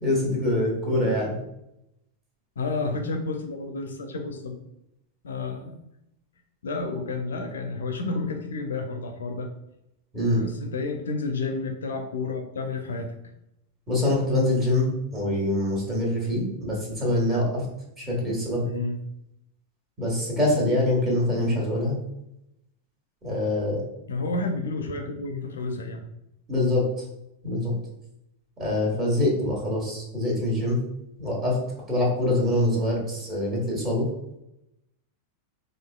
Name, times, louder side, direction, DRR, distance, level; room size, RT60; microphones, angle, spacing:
voice 1, 0.0-1.4 10.1-10.4 13.9-17.7 18.0-18.6 20.0-22.0 23.2-23.8 26.5-26.9 27.4-27.7 28.6-30.8 31.2-31.6 31.9-34.1, left 1 dB, 25° right, -3 dB, 1.4 m, -24 dB
voice 2, 2.6-4.6 5.2-5.7 6.6-9.5 10.3-13.1 18.6-19.0 21.4-21.7 24.1-26.0 32.7-33.0, left 3 dB, 65° left, 4 dB, 0.4 m, -30 dB
4.5 x 2.5 x 2.2 m, 0.85 s
figure-of-eight pair, 90°, 0 cm